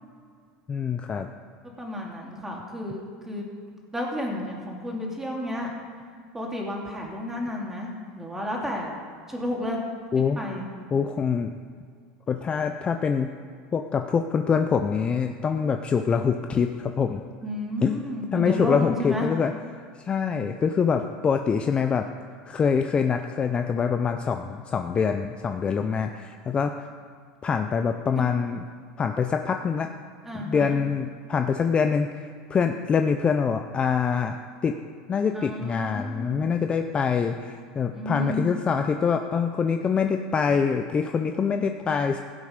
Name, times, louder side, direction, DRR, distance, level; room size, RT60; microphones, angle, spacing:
voice 1, 0.7-1.3 10.1-10.4 10.9-11.5 12.3-13.3 13.7-17.2 17.8-18.0 18.3-22.1 22.5-26.9 27.4-28.6 29.0-29.9 30.3-34.8 35.1-42.2, left 6 dB, 25° left, 6 dB, 0.6 m, -25 dB
voice 2, 1.8-3.5 3.9-5.7 6.3-9.0 9.3-9.8 10.1-10.7 17.4-19.3 30.2-30.8 35.3-36.7 37.9-38.5, left 1 dB, 10° right, -1 dB, 2.7 m, -32 dB
16.0 x 8.4 x 5.2 m, 2.1 s
supercardioid pair, 125°, 4 cm